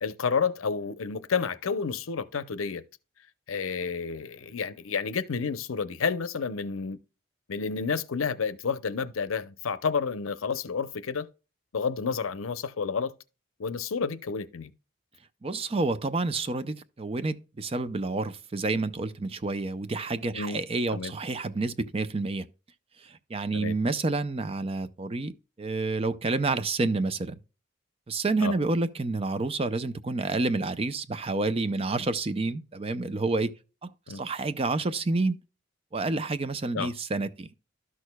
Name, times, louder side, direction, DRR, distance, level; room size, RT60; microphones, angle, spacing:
voice 1, 0.0-2.8 3.5-7.0 7.5-11.3 11.7-13.1 13.6-14.7 20.3-20.6 20.9-21.1 23.5-23.7 28.4-28.5 34.1-34.2 36.7-36.9, left 5 dB, 90° left, 0.6 m, -30 dB
voice 2, 15.4-22.5 23.0-25.3 25.6-27.4 28.1-33.5 33.8-35.4 35.9-37.5, right 3 dB, 30° right, 0.5 m, -29 dB
12.5 x 6.4 x 2.2 m
head